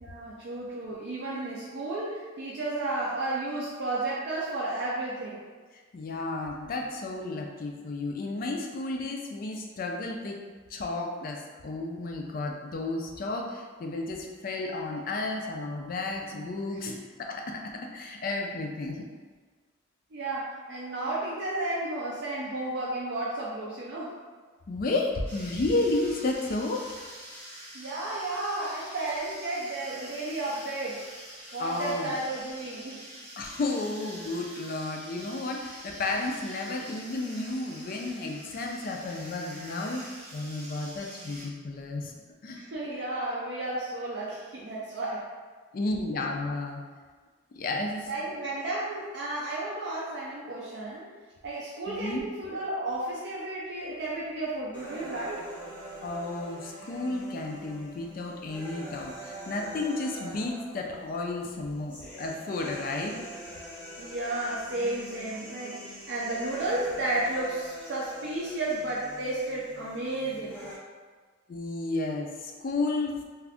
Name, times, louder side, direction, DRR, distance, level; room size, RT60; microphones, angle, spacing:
voice 1, 0.0-5.4 16.8-16.9 20.1-24.1 27.7-31.0 31.5-33.0 42.5-45.3 48.1-51.1 51.4-55.4 64.0-70.6, right 2 dB, 55° right, -6 dB, 0.4 m, -33 dB
voice 2, 5.9-10.4 10.7-19.1 24.7-26.9 31.6-32.2 33.4-40.0 40.3-42.1 42.4-42.6 45.7-46.8 47.5-48.1 51.9-52.2 56.0-63.2 71.5-73.2, left 2 dB, 40° left, 1 dB, 0.3 m, -32 dB
sound 1, 25.3-41.5, equal, 30° right, 1.2 m, -46 dB
sound 2, 54.7-70.7, equal, 5° left, 0.6 m, -44 dB
2.4 x 2.3 x 3.4 m, 1.5 s
head